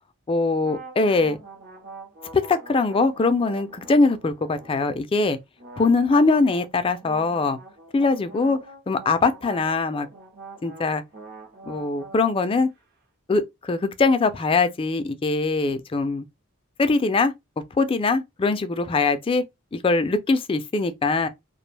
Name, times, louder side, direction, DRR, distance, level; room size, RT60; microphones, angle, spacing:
voice 1, 0.3-1.4 2.3-5.4 5.8-7.6 7.9-8.6 8.9-10.1 10.6-11.0 11.7-12.7 13.3-16.3 16.8-17.3 17.7-19.4 19.7-21.3, left 3 dB, 25° left, 0.3 m, -22 dB
sound 1, 0.6-5.0 5.6-12.8, right 2 dB, 50° right, 0.6 m, -44 dB
2.4 x 2.1 x 3.2 m
head